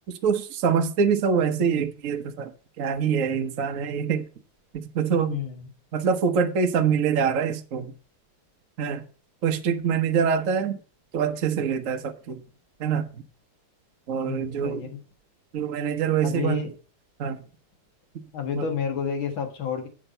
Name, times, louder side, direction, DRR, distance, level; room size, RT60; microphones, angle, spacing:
voice 1, 0.1-2.5 2.8-4.3 4.7-5.4 5.9-7.9 8.8-9.0 9.4-10.8 11.1-12.4 12.8-13.0 14.1-14.8 15.5-16.6 17.2-17.4 18.6-18.7, right 6 dB, 50° right, 6 dB, 1.0 m, -25 dB
voice 2, 5.3-5.7 10.3-10.4 14.3-15.0 16.2-16.7 18.3-19.9, left 7 dB, 65° left, 5 dB, 2.5 m, -30 dB
9.0 x 5.9 x 5.5 m, 0.37 s
omnidirectional pair, 2.4 m